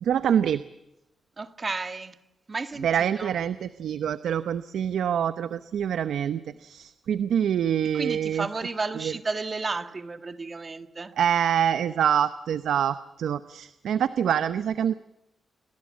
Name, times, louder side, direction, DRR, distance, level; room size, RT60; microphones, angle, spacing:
voice 1, 0.0-0.6 2.8-8.5 9.0-9.1 11.2-14.9, right 9 dB, 90° right, 12 dB, 0.8 m, -25 dB
voice 2, 1.4-2.2 2.5-3.3 7.9-11.1, right 3 dB, 35° right, 9 dB, 1.7 m, -32 dB
29.0 x 20.5 x 7.5 m, 0.90 s
cardioid pair, 100°, 0 cm